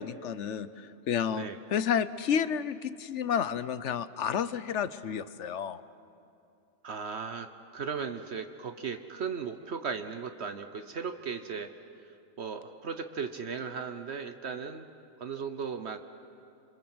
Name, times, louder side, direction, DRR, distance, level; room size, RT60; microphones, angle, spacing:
voice 1, 0.0-5.8, left 8 dB, 70° left, 15 dB, 1.1 m, -31 dB
voice 2, 6.8-7.5 7.7-11.7 12.4-14.9 15.2-16.0, right 6 dB, 60° right, 8 dB, 1.2 m, -36 dB
27.0 x 26.5 x 7.9 m, 2.6 s
omnidirectional pair, 1.3 m